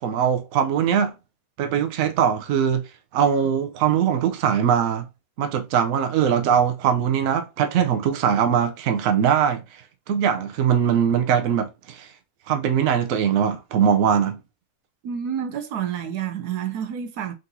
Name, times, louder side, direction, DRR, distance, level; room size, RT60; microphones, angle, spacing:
voice 1, 0.0-1.1 1.6-2.8 3.1-5.1 5.4-9.8 10.1-12.1 12.5-14.4, right 8 dB, 65° right, 1.0 m, -21 dB
voice 2, 15.0-17.3, right 8 dB, 85° right, 1.3 m, -29 dB
4.0 x 3.9 x 2.7 m
omnidirectional pair, 1.6 m